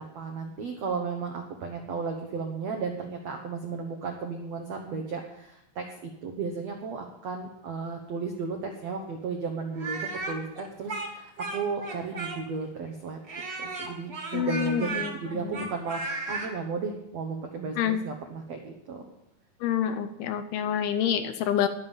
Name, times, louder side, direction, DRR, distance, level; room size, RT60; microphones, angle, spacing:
voice 1, 0.0-10.0 10.3-13.2 13.6-19.1, right 5 dB, 75° right, 3 dB, 1.5 m, -34 dB
Speech, 9.8-12.7 13.3-16.5, right 3 dB, 40° right, 1.8 m, -35 dB
voice 2, 14.3-15.7 17.8-18.0 19.6-21.7, left 9 dB, 80° left, 10 dB, 2.4 m, -28 dB
20.5 x 7.0 x 5.5 m, 0.81 s
omnidirectional pair, 4.8 m